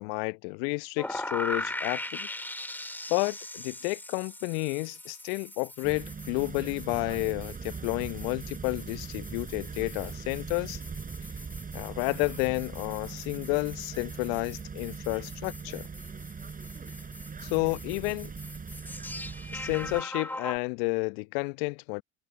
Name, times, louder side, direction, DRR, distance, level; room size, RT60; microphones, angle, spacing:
voice 1, 0.0-2.3 3.1-10.8 11.7-15.9 17.4-18.3 19.5-22.0, left 32 dB, 60° left, 0.9 m, -31 dB
sound 1, 1.0-20.6, left 1 dB, 5° left, 2.2 m, -41 dB
sound 2, 5.8-20.0, right 5 dB, 25° right, 5.8 m, -41 dB
hypercardioid pair, 70°, 34 cm